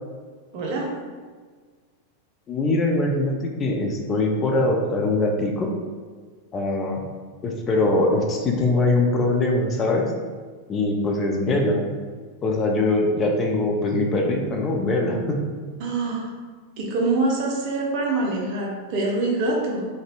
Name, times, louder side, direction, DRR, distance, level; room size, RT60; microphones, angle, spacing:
voice 1, 0.5-0.9 15.8-16.3 16.8-19.9, right 2 dB, 45° right, -2 dB, 0.7 m, -25 dB
voice 2, 2.5-5.7 6.5-7.0 7.4-10.1 10.7-11.8 12.4-15.4, left 2 dB, 25° left, 1 dB, 0.6 m, -22 dB
4.0 x 3.2 x 2.5 m, 1.5 s
figure-of-eight pair, 90°, 0 cm